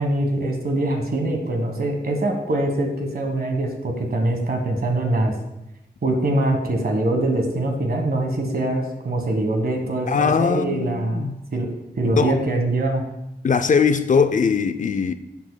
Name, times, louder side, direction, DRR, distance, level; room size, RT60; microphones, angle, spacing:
voice 1, 0.0-5.3 6.0-11.7 12.0-13.0, right 1 dB, 60° right, 1.4 m, -23 dB
voice 2, 10.1-11.4 12.2-12.3 13.4-15.1, left 5 dB, 45° left, 0.4 m, -20 dB
10.5 x 7.2 x 2.2 m
wide cardioid pair, 115°, 18 cm